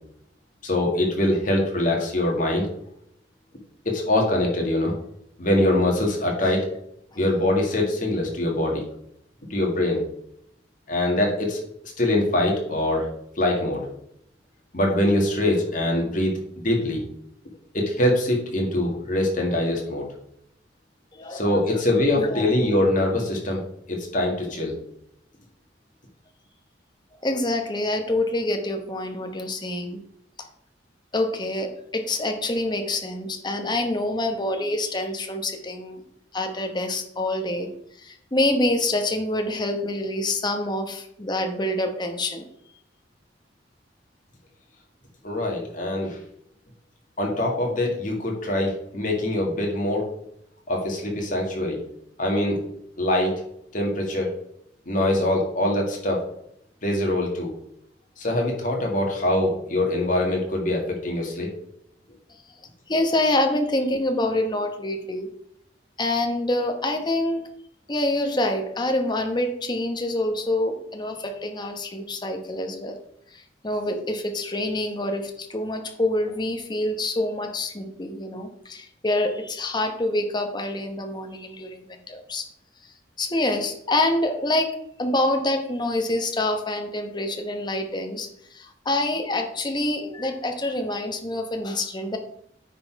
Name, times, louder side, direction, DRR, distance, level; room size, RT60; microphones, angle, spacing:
voice 1, 0.6-2.7 3.9-5.0 5.4-6.7 7.2-8.8 9.5-10.0 10.9-13.1 13.4-13.8 14.7-16.3 16.6-17.0 17.7-20.1 21.3-24.8 45.2-46.2 47.2-50.0 50.7-51.8 52.2-52.6 53.0-53.3 53.7-54.3 54.9-56.2 56.8-57.5 58.2-61.5, left 1 dB, 45° left, 0 dB, 2.0 m, -23 dB
voice 2, 21.1-21.8 22.2-22.4 27.2-30.0 31.1-36.0 36.3-37.7 38.0-42.5 62.9-65.3 66.0-67.4 67.9-73.0 73.3-82.4 83.2-92.2, left 1 dB, 25° left, 5 dB, 1.0 m, -26 dB
9.4 x 4.1 x 4.6 m, 0.73 s
head